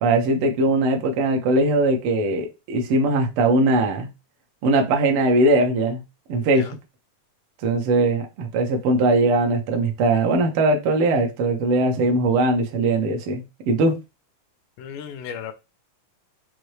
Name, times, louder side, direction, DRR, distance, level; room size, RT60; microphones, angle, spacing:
voice 1, 0.0-4.1 4.6-6.0 6.3-6.7 7.6-14.0, right 2 dB, 80° right, 1.2 m, -20 dB
voice 2, 14.8-15.5, left 8 dB, 85° left, 2.2 m, -35 dB
6.1 x 2.7 x 3.1 m
omnidirectional pair, 3.5 m